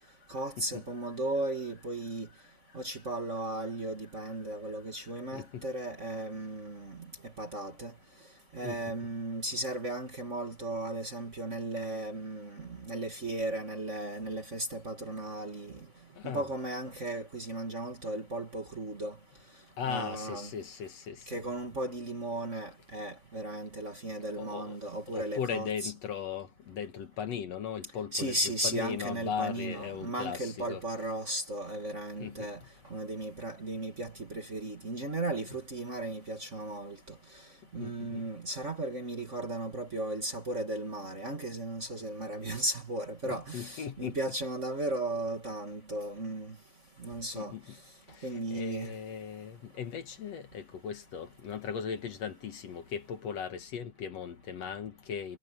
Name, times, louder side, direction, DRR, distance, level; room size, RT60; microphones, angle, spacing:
voice 1, 0.3-2.3 2.7-7.9 8.5-15.9 16.2-19.2 19.8-20.5 21.3-25.9 28.1-32.6 32.9-37.2 37.7-46.6 47.0-47.5 48.2-49.0, right 1 dB, 25° right, 2.1 m, -36 dB
voice 2, 5.3-5.7 8.6-8.8 16.2-16.5 19.8-21.4 24.4-24.8 25.1-28.4 28.6-30.8 32.2-32.5 37.8-38.2 43.2-44.2 47.3-47.8 48.2-55.4, left 7 dB, 65° left, 2.5 m, -38 dB
omnidirectional pair, 3.4 m